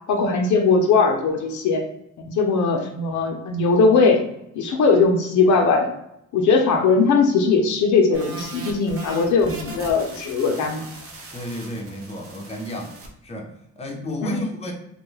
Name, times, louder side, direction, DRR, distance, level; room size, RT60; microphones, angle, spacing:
voice 1, 0.1-1.8 2.3-4.2 4.5-5.9 6.3-10.9 14.2-14.5, left 4 dB, 80° left, 2 dB, 0.6 m, -19 dB
sound 1, 8.1-13.1, right 2 dB, 50° right, 0.7 m, -39 dB
voice 2, 11.3-12.9 13.2-14.7, left 1 dB, 20° left, 0 dB, 0.6 m, -32 dB
2.3 x 2.1 x 3.1 m, 0.79 s
cardioid pair, 90°, 30 cm